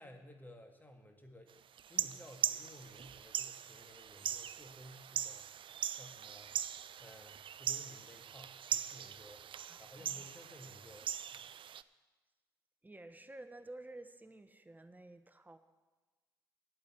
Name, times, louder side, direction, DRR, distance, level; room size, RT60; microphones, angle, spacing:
voice 1, 0.0-1.5 1.9-5.6 5.9-6.5 7.0-11.5, equal, 15° left, 4 dB, 1.8 m, -56 dB
sound 1, 1.8-11.8, right 9 dB, 50° right, 0.4 m, -40 dB
voice 2, 9.5-10.3 12.8-15.6, right 2 dB, 15° right, 9 dB, 1.1 m, -52 dB
8.5 x 8.3 x 8.8 m, 1.3 s
hypercardioid pair, 45°, 11 cm